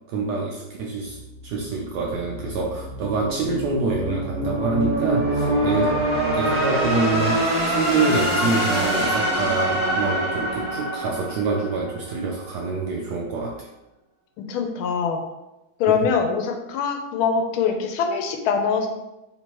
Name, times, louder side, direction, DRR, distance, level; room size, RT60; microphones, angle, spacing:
voice 1, 0.1-13.7 15.9-16.1, right 3 dB, 75° right, -1 dB, 0.9 m, -26 dB
sound 1, 1.1-12.1, right 1 dB, 20° right, 1.3 m, -25 dB
voice 2, 14.4-15.2 15.8-18.9, left 6 dB, 85° left, 5 dB, 1.5 m, -23 dB
3.5 x 2.9 x 4.4 m, 0.96 s
omnidirectional pair, 2.2 m